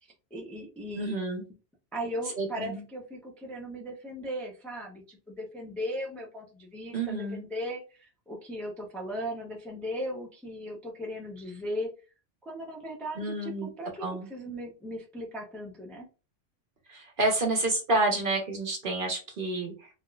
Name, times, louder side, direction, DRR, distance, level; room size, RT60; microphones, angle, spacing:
voice 1, 0.0-1.1 1.9-11.9 12.4-13.9 14.3-16.0, equal, ahead, -1 dB, 0.4 m, -37 dB
voice 2, 0.9-1.4 2.4-2.8 6.9-7.4 13.2-13.7 14.0-14.3 16.9-19.9, right 2 dB, 50° right, 2 dB, 0.8 m, -29 dB
3.4 x 2.4 x 2.3 m, 0.33 s
omnidirectional pair, 1.3 m